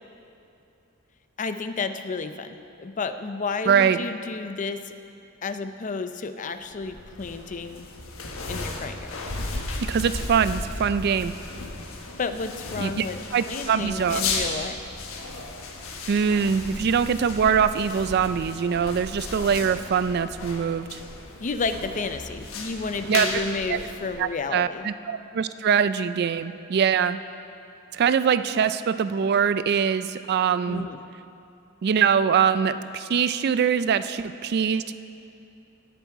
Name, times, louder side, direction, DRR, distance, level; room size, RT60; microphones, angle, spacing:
voice 1, 1.4-5.0 5.4-7.9 8.5-9.2 12.2-13.2 13.5-14.8 21.4-24.9 30.7-31.0, left 4 dB, 40° left, 9 dB, 0.5 m, -31 dB
voice 2, 3.7-4.0 9.9-11.3 12.8-13.1 13.3-14.2 16.1-21.0 23.1-23.3 23.7-23.9 24.2-27.2 27.9-30.9 31.8-34.9, right 7 dB, 50° right, 13 dB, 0.3 m, -23 dB
sound 1, 6.7-24.5, left 3 dB, 85° left, 1.2 m, -35 dB
18.0 x 7.0 x 4.6 m, 2.6 s
head